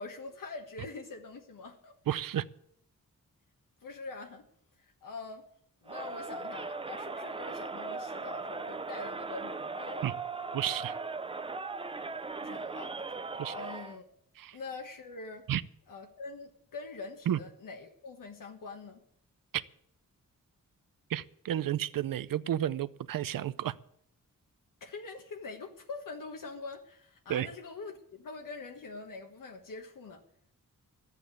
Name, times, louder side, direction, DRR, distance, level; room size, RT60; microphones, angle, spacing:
voice 1, 0.0-2.0 3.8-4.4 4.8-5.4 5.8-10.1 12.4-12.9 13.5-14.2 14.5-15.4 15.9-19.0 24.8-30.2, left 3 dB, 75° left, 3 dB, 1.5 m, -44 dB
voice 2, 2.1-2.4 10.0-10.1 10.5-10.9 13.4-13.5 14.4-14.6 15.5-15.6 17.3-17.4 19.5-19.6 21.1-23.7 27.3-27.5, right 11 dB, 90° right, 16 dB, 0.6 m, -31 dB
Crowd, 5.9-14.0, right 3 dB, 15° right, 0.5 m, -38 dB
12.5 x 8.3 x 8.3 m, 0.70 s
wide cardioid pair, 140°, 33 cm